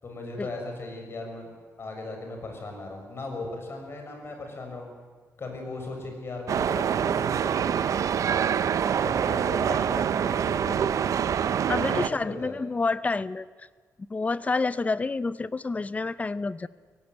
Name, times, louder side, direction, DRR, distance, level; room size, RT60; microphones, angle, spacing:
voice 1, 0.0-1.5 1.8-4.9 5.4-7.8 9.0-11.0 11.9-12.6, left 2 dB, 40° left, 3 dB, 6.3 m, -38 dB
sound 1, 6.5-12.1, right 8 dB, 65° right, 0.7 m, -25 dB
voice 2, 11.7-13.5 14.1-16.7, left 3 dB, 25° left, 17 dB, 0.6 m, -28 dB
23.5 x 18.0 x 9.1 m, 1.4 s
wide cardioid pair, 130°, 6 cm